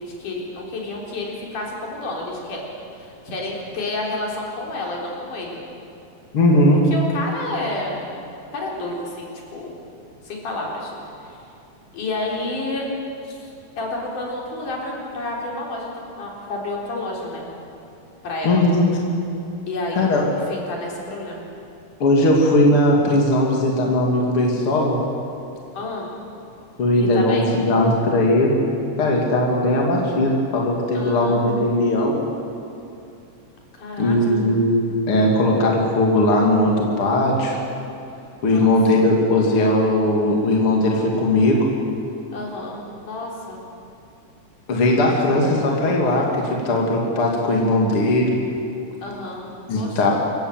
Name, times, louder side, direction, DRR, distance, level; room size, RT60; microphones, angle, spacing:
voice 1, 0.0-2.6 3.0-5.6 6.9-8.0 8.5-9.8 10.2-11.0 11.2-11.4 11.9-12.9 13.2-13.5 13.8-15.9 16.2-17.5 18.2-18.6 19.7-21.5 25.7-26.1 27.0-27.5 30.9-31.4 33.7-34.4 38.5-38.7 42.3-43.6 49.0-49.5 49.8-50.1, left 2 dB, 75° left, -2 dB, 5.3 m, -30 dB
voice 2, 6.3-6.9 18.4-18.9 20.0-20.2 22.0-25.0 26.8-28.6 29.0-32.2 34.0-34.8 35.1-37.6 38.4-41.7 44.7-48.4 49.7-50.1, left 1 dB, 45° left, -1 dB, 3.5 m, -18 dB
27.0 x 15.0 x 9.1 m, 2.7 s
omnidirectional pair, 3.7 m